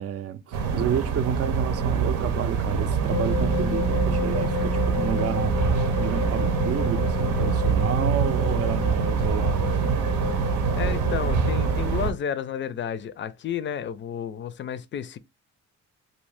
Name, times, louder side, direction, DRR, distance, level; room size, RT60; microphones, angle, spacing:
voice 1, 0.0-5.6 6.0-10.0, right 8 dB, 50° right, 0.5 m, -30 dB
sound 1, 0.5-12.1, right 6 dB, 85° right, 0.8 m, -25 dB
sound 2, 3.1-11.8, left 9 dB, 85° left, 0.7 m, -32 dB
voice 2, 10.8-15.2, left 9 dB, 40° left, 0.4 m, -31 dB
2.7 x 2.7 x 3.2 m
cardioid pair, 90°, 30 cm